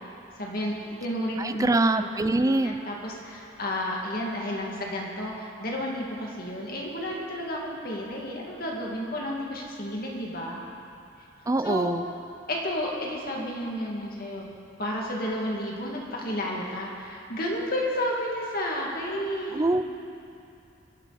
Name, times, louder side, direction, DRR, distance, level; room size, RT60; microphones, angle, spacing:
voice 1, 0.4-2.1 2.4-10.6 11.6-11.9 12.5-14.5 14.8-19.8, left 1 dB, 50° left, -2 dB, 2.2 m, -32 dB
voice 2, 1.4-2.8 11.5-12.0 19.5-19.8, right 2 dB, 20° right, 10 dB, 0.5 m, -24 dB
23.5 x 10.5 x 4.2 m, 2.6 s
head